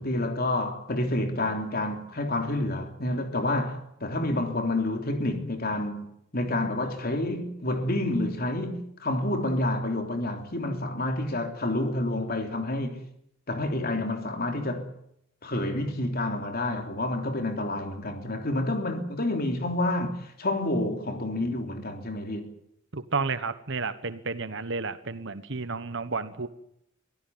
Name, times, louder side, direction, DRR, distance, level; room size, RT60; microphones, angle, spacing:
voice 1, 0.0-13.0 13.5-14.9 15.4-22.5, left 1 dB, 45° left, 3.3 m, -29 dB
voice 2, 22.9-26.5, right 4 dB, 60° right, 1.3 m, -31 dB
24.0 x 16.0 x 9.5 m
head